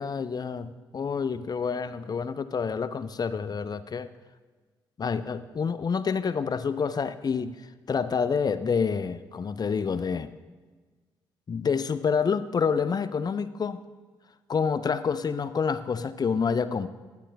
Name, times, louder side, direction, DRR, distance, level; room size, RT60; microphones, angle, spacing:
voice 1, 0.0-4.1 5.0-7.6 7.9-10.3 11.5-13.8 14.5-16.9, left 6 dB, 45° left, 13 dB, 0.6 m, -28 dB
11.5 x 9.8 x 3.4 m, 1.4 s
supercardioid pair, 50°, 10 cm